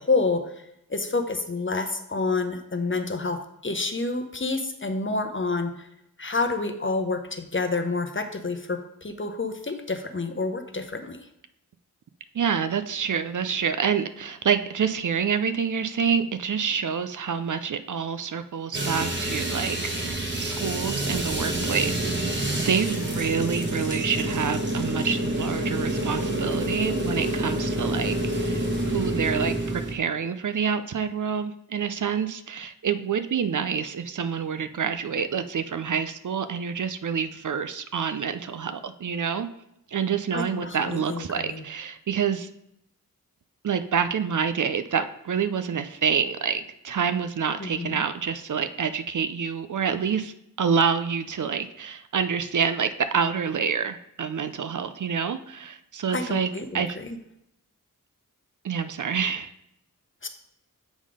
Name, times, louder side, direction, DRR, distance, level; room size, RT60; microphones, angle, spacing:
voice 1, 0.0-5.9 6.2-11.2 40.3-41.6 47.6-48.0 56.1-57.2 60.2-60.3, left 3 dB, 35° left, 7 dB, 0.8 m, -28 dB
voice 2, 12.3-39.5 39.9-42.5 43.6-57.0 58.6-59.5, right 7 dB, 60° right, 11 dB, 0.5 m, -27 dB
sound 1, 18.7-29.9, right 1 dB, 35° right, 1.2 m, -28 dB
7.2 x 3.7 x 4.9 m, 0.80 s
wide cardioid pair, 60°, 34 cm